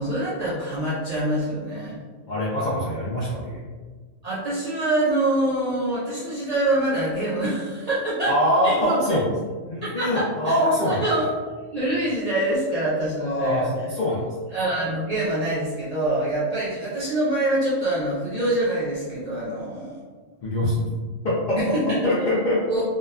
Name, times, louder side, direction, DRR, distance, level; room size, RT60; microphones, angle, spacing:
voice 1, 0.0-2.0 4.2-8.3 8.6-9.2 9.8-11.3 11.7-13.7 14.5-20.0 21.6-22.1 22.7-22.8, right 1 dB, 80° right, -8 dB, 0.3 m, -25 dB
voice 2, 2.3-3.6 8.3-9.3 9.7-11.0 13.2-13.6 13.9-14.3 20.4-20.9 21.2-21.7 22.0-22.6, left 1 dB, 65° left, -7 dB, 0.4 m, -23 dB
2.9 x 2.1 x 2.3 m, 1.4 s
omnidirectional pair, 1.3 m